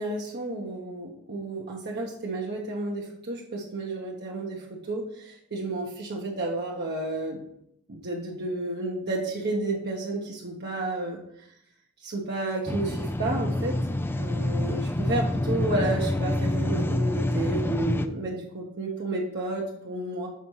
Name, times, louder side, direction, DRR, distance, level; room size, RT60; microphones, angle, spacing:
voice 1, 0.0-7.4 7.9-11.5 12.0-13.8 14.1-20.3, right 2 dB, 50° right, -3 dB, 1.0 m, -31 dB
sound 1, 12.7-18.1, left 1 dB, 10° left, 0.3 m, -27 dB
6.9 x 5.0 x 4.6 m, 0.74 s
head